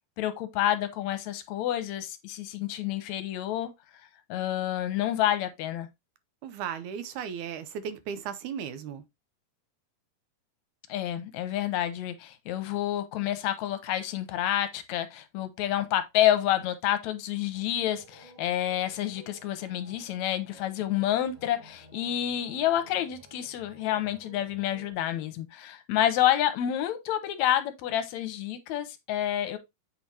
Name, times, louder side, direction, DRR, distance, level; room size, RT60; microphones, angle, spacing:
voice 1, 0.2-3.7 4.3-5.9 10.9-29.6, left 12 dB, 80° left, 1.9 m, -29 dB
voice 2, 6.4-9.0, right 8 dB, 90° right, 2.1 m, -36 dB
sound 1, 17.5-24.9, right 2 dB, 15° right, 2.5 m, -54 dB
7.7 x 4.6 x 2.8 m
omnidirectional pair, 3.4 m